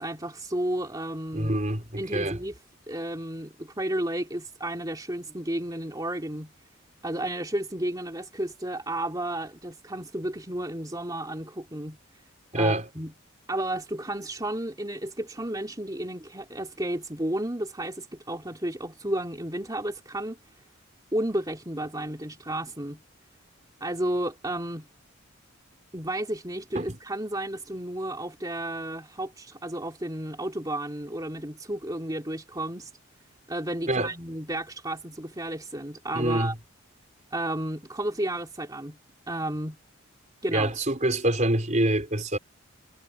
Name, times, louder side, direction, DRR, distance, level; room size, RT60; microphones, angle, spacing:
voice 1, 0.0-1.5 2.0-2.6 2.9-6.5 7.0-12.0 12.5-13.1 13.5-20.4 21.1-23.0 23.8-24.9 25.9-32.9 33.5-36.5 37.3-39.0 39.3-39.8 40.4-40.7, right 1 dB, 15° right, 3.2 m, -32 dB
voice 2, 1.3-2.4 12.5-12.8 26.7-27.0 33.9-34.1 36.1-36.5 40.5-42.4, right 1 dB, 35° right, 4.5 m, -25 dB
head